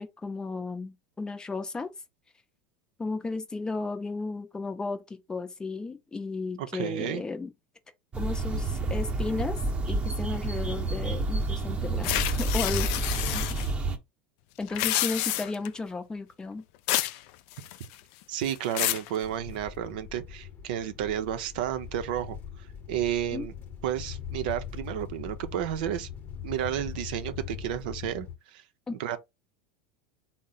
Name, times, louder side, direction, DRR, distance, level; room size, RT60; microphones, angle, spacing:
voice 1, 0.0-1.9 3.0-7.5 8.2-9.6 9.9-12.9 13.3-13.4 14.6-16.6 23.3-23.5 28.9-29.0, left 3 dB, 15° left, 0.6 m, -34 dB
voice 2, 6.6-7.2 18.3-22.4 22.9-23.5 23.8-26.1 26.4-28.3 28.5-28.6 29.0-29.2, right 11 dB, 70° right, 0.5 m, -31 dB
sound 1, 8.1-14.0, right 3 dB, 25° right, 0.8 m, -29 dB
sound 2, 12.0-13.7 14.6-15.7 16.9-17.2 17.5-18.0 18.4-19.1, left 14 dB, 60° left, 0.3 m, -29 dB
sound 3, 19.2-28.4, left 8 dB, 40° left, 0.8 m, -41 dB
3.6 x 2.0 x 4.0 m
hypercardioid pair, 105°, 5 cm